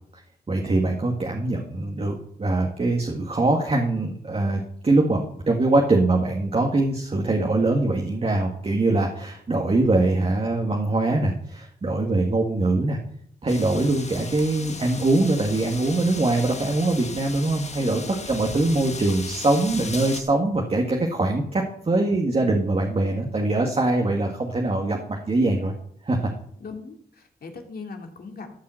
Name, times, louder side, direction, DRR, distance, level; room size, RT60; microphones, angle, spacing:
voice 1, 0.5-13.0 13.4-18.0 18.3-25.7 26.0-26.3, right 2 dB, 35° right, 1 dB, 1.8 m, -23 dB
sound 1, 13.5-20.2, left 4 dB, 45° left, 1.5 m, -37 dB
voice 2, 17.8-18.2 26.6-28.6, left 4 dB, 70° left, 3 dB, 2.4 m, -39 dB
13.5 x 5.5 x 7.7 m, 0.67 s
cardioid pair, 70°, 17 cm